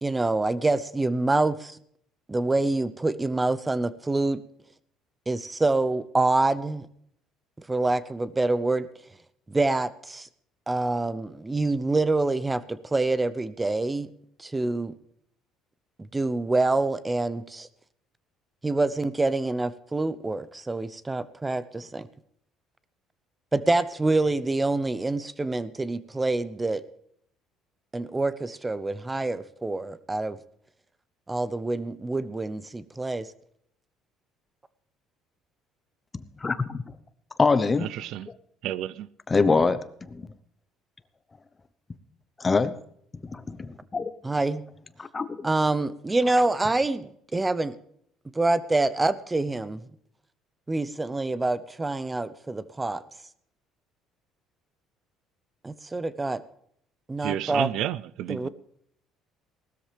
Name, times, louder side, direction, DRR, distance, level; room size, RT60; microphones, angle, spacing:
voice 1, 0.0-1.8 2.3-4.4 5.3-6.9 7.6-8.9 9.5-10.3 10.7-14.1 14.4-14.9 16.0-17.7 18.6-22.1 23.5-26.8 27.9-30.4 31.3-33.3 44.2-44.6 45.4-47.8 48.3-49.8 50.7-53.0 55.6-56.4 57.1-57.7 58.3-58.5, right 2 dB, 15° right, 0.8 m, -26 dB
voice 2, 36.4-36.8 37.4-37.9 39.3-39.8 40.1-40.3 42.4-42.8 43.2-44.1 45.0-45.5, left 4 dB, 20° left, 0.9 m, -24 dB
voice 3, 37.8-38.3 38.6-39.1 57.2-58.5, right 12 dB, 70° right, 0.5 m, -31 dB
18.5 x 13.0 x 3.4 m
cardioid pair, 115°, 0 cm